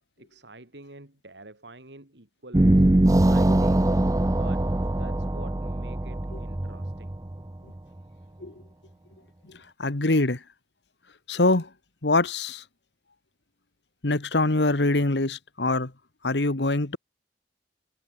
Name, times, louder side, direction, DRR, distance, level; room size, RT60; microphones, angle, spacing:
voice 1, 0.2-2.9 3.3-3.9 4.3-4.7 5.0-7.1, right 2 dB, 80° right, 3.7 m, -47 dB
sound 1, 2.5-7.8, right 1 dB, 20° right, 0.5 m, -22 dB
voice 2, 9.5-10.4 11.3-11.7 12.0-12.6 14.0-15.9 16.2-17.0, left 2 dB, 80° left, 1.6 m, -24 dB
head